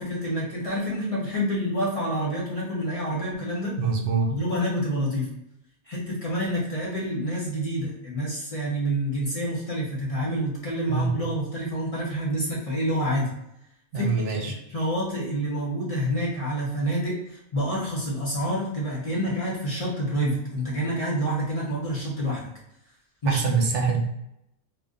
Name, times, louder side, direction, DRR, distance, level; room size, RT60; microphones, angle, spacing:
voice 1, 0.0-3.8 4.3-5.3 5.9-13.3 14.0-14.4 14.7-22.5 23.2-23.4, equal, 35° left, -5 dB, 0.7 m, -28 dB
voice 2, 3.8-4.3 10.9-11.1 13.9-14.6 23.2-24.0, right 4 dB, 80° right, 2 dB, 0.9 m, -24 dB
2.5 x 2.2 x 3.7 m, 0.82 s
omnidirectional pair, 1.2 m